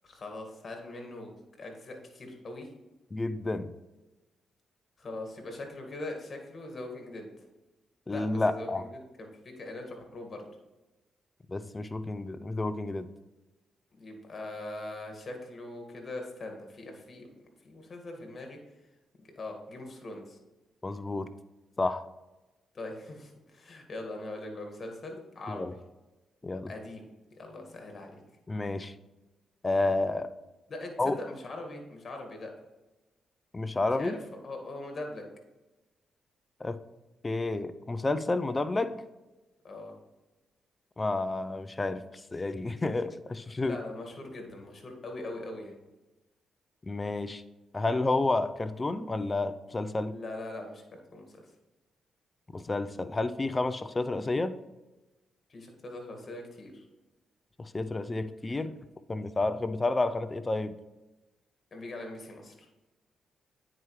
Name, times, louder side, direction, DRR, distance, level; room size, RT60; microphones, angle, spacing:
voice 1, 0.0-2.7 5.0-7.3 8.1-10.5 13.9-17.3 17.6-18.6 19.2-20.4 22.7-25.7 26.7-27.0 27.3-28.2 30.7-32.5 34.0-34.2 34.4-35.3 39.6-39.9 43.6-45.8 50.0-51.5 55.5-56.9 61.7-62.7, left 2 dB, 50° left, 3 dB, 1.9 m, -41 dB
voice 2, 3.1-3.7 8.1-8.9 11.5-13.1 20.8-21.3 21.8-22.0 25.5-25.7 26.4-26.7 28.5-28.9 29.6-30.3 31.0-31.2 33.5-34.1 36.6-36.8 37.2-38.9 41.0-43.8 46.8-47.4 47.7-50.1 52.5-54.5 57.6-58.8 59.1-60.8, left 2 dB, 30° left, 13 dB, 0.5 m, -30 dB
9.1 x 4.8 x 3.2 m, 1.1 s
supercardioid pair, 60°, 0 cm